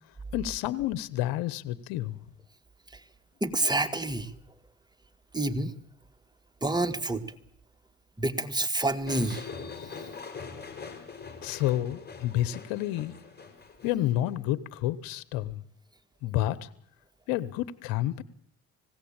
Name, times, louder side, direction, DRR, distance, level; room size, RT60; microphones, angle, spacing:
voice 1, 0.3-2.2 11.4-13.2 13.8-15.6 16.2-16.7 17.3-18.2, left 14 dB, 90° left, 14 dB, 0.9 m, -29 dB
voice 2, 3.4-4.3 5.3-5.7 6.6-7.2 8.2-9.5, right 2 dB, 10° right, 7 dB, 1.8 m, -28 dB
sound 1, 9.1-14.3, left 5 dB, 30° left, 4.6 m, -43 dB
20.0 x 16.5 x 8.7 m, 0.65 s
supercardioid pair, 65°, 33 cm